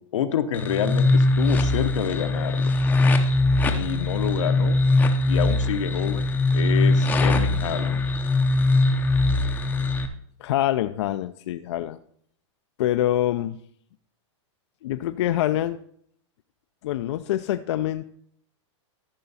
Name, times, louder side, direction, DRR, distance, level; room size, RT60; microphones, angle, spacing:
voice 1, 0.1-2.7 3.6-4.8 5.3-8.0, left 8 dB, 85° left, 8 dB, 1.0 m, -28 dB
sound 1, 0.5-10.1, left 2 dB, 10° left, 0.6 m, -21 dB
voice 2, 10.4-12.0 12.8-13.6 14.8-15.8 16.8-18.0, left 13 dB, 65° left, 9 dB, 0.4 m, -25 dB
13.5 x 5.8 x 4.1 m, 0.64 s
supercardioid pair, 160°, 16 cm